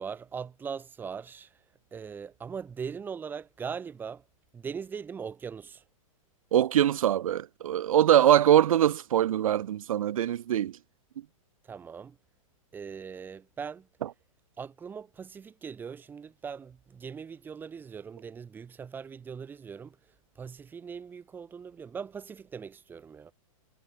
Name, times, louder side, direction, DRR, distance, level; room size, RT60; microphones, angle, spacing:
voice 1, 0.0-1.5 1.9-4.2 4.5-5.8 11.7-12.2 12.7-13.9 14.6-20.0 20.4-23.3, right 6 dB, 10° right, 6.0 m, -40 dB
voice 2, 6.5-10.8, right 11 dB, 75° right, 0.9 m, -23 dB
hypercardioid pair, 165°, 18 cm